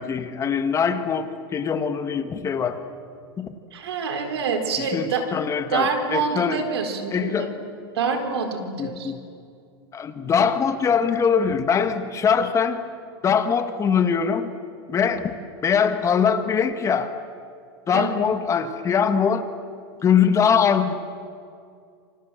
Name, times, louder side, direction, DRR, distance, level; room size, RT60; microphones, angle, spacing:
voice 1, 0.0-2.8 3.4-3.5 4.8-6.6 7.1-7.5 8.8-9.2 9.9-12.8 13.2-14.5 14.9-15.2 15.6-17.1 17.9-19.5 20.0-20.9, left 7 dB, 25° left, 9 dB, 1.7 m, -22 dB
voice 2, 3.7-5.3 5.7-7.5 7.9-9.1 17.9-18.2, right 5 dB, 85° right, 5 dB, 4.2 m, -26 dB
27.5 x 25.5 x 7.7 m, 2.3 s
supercardioid pair, 130°, 13 cm